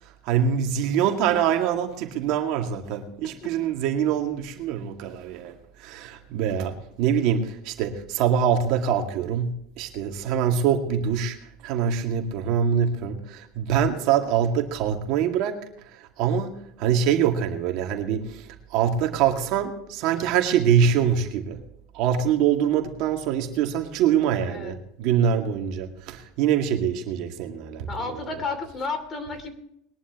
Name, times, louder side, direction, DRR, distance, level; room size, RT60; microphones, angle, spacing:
voice 1, 0.0-21.6 21.9-28.3, right 8 dB, 55° right, 2.1 m, -24 dB
voice 2, 27.9-29.5, left 4 dB, 25° left, 2.8 m, -32 dB
21.5 x 11.5 x 3.0 m
supercardioid pair, 130°, 0 cm